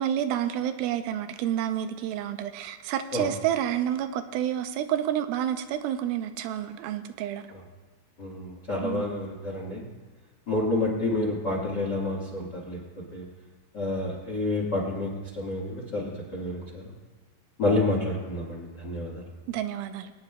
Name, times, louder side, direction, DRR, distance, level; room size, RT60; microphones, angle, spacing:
voice 1, 0.0-7.4 8.8-9.1 19.5-20.1, right 10 dB, 90° right, 9 dB, 2.4 m, -29 dB
voice 2, 8.2-9.9 10.5-12.8 13.1-13.2 13.7-15.1 15.4-16.6 17.6-19.2, left 2 dB, 50° left, -4 dB, 1.2 m, -29 dB
22.5 x 9.7 x 2.2 m, 1.3 s
omnidirectional pair, 4.2 m